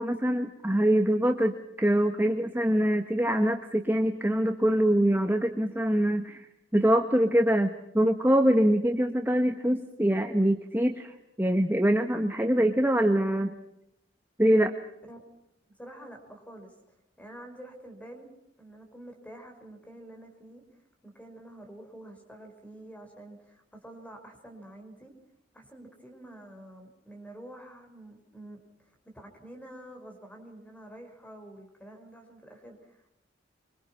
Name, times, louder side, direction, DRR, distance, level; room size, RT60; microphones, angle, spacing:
voice 1, 0.0-6.5 6.7-13.5 14.4-14.7, right 1 dB, 10° right, 5 dB, 1.4 m, -24 dB
voice 2, 15.7-18.3 18.6-20.6 21.0-25.1 25.5-28.6 29.1-33.0, right 1 dB, 10° left, 4 dB, 5.5 m, -48 dB
26.0 x 25.0 x 5.8 m, 0.80 s
head